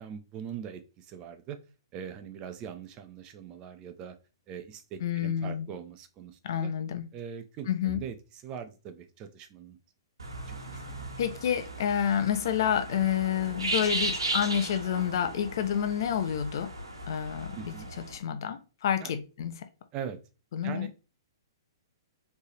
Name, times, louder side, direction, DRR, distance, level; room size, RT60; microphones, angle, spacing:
voice 1, 0.0-1.6 1.9-4.1 4.5-6.7 7.1-9.8 10.5-11.0 17.5-17.9 19.0-19.1 19.9-20.2 20.6-21.0, right 8 dB, 30° right, 0.7 m, -41 dB
voice 2, 5.0-5.7 6.4-7.1 7.7-8.0 11.2-16.7 17.1-17.7 18.1-19.6 20.5-20.9, left 9 dB, 60° left, 0.7 m, -29 dB
sound 1, 10.2-18.2, right 2 dB, 85° right, 1.2 m, -36 dB
4.4 x 3.4 x 3.0 m
hypercardioid pair, 125°, 2 cm